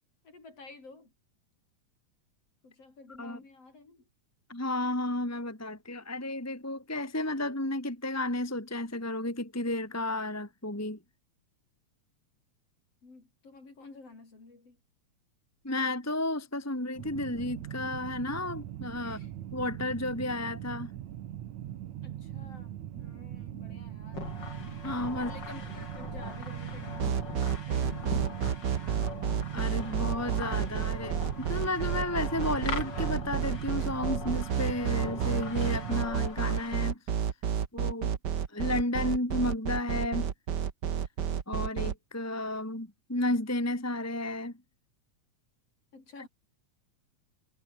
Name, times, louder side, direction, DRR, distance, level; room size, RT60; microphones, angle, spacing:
voice 1, 0.2-1.1 2.6-4.1 13.0-14.8 19.0-19.3 22.0-24.4 25.1-28.8 45.9-46.3, left 3 dB, 55° left, 7.3 m, -51 dB
voice 2, 4.5-11.0 15.6-19.2 19.5-20.9 24.8-25.3 29.5-37.0 37.7-38.1 38.5-40.3 41.5-44.5, left 1 dB, 5° left, 1.7 m, -32 dB
sound 1, 17.0-35.9, right 12 dB, 75° right, 2.6 m, -40 dB
sound 2, 24.1-36.8, left 4 dB, 35° left, 3.5 m, -41 dB
sound 3, 27.0-41.9, right 8 dB, 50° right, 1.5 m, -30 dB
omnidirectional pair, 3.4 m